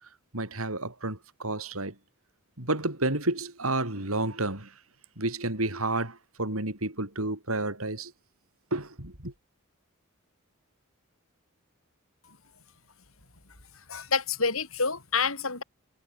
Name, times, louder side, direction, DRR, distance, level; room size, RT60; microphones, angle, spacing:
voice 1, 0.3-1.9 2.6-4.7 5.2-8.1 8.7-9.3, right 2 dB, 80° right, 6.3 m, -30 dB
voice 2, 13.9-15.6, left 5 dB, 70° left, 7.8 m, -28 dB
head